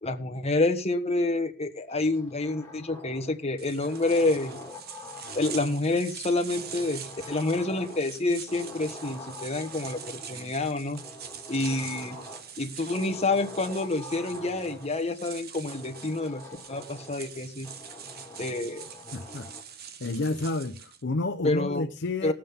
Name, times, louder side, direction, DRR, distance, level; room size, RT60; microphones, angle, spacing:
voice 1, 0.0-4.6 5.3-11.0 11.5-12.2 12.6-16.4 16.7-17.7 18.4-18.9 21.4-21.9 22.2-22.3, left 2 dB, 30° left, 1.3 m, -28 dB
sound 1, 1.9-3.4 3.8-5.9 6.5-8.2 8.5-10.5 10.9-12.5 12.9-14.9 15.7-17.2 17.6-19.7, left 2 dB, 10° left, 2.3 m, -45 dB
sound 2, 3.6-21.0, right 8 dB, 55° right, 1.1 m, -44 dB
voice 2, 19.1-19.5 20.0-22.3, left 2 dB, 60° left, 0.7 m, -30 dB
19.0 x 7.5 x 3.6 m
head